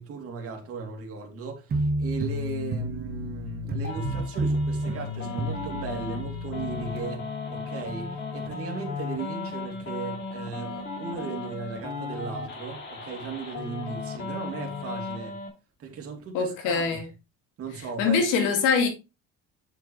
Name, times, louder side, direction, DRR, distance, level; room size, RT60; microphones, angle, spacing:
voice 1, 0.0-15.4 15.8-16.9 17.6-18.3, right 5 dB, 50° right, 2.7 m, -37 dB
sound 1, 1.7-7.0, right 1 dB, 30° right, 1.6 m, -30 dB
sound 2, 3.8-15.5, left 4 dB, 35° left, 3.0 m, -36 dB
voice 2, 16.3-17.1 18.0-18.9, left 5 dB, 85° left, 2.5 m, -23 dB
7.8 x 6.8 x 3.3 m
cardioid pair, 130°, 31 cm